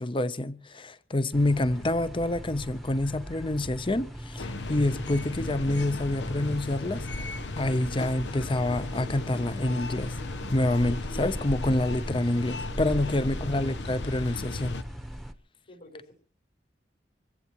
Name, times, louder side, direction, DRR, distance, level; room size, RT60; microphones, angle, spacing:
voice 1, 0.0-7.3 7.6-10.1 10.5-14.8, left 1 dB, 30° left, 0.7 m, -27 dB
sound 1, 1.3-15.3, equal, ahead, 1.0 m, -39 dB
sound 2, 4.4-14.8, left 3 dB, 85° left, 0.9 m, -37 dB
voice 2, 13.1-13.6 15.7-16.1, left 1 dB, 60° left, 4.6 m, -49 dB
25.5 x 15.5 x 3.1 m
head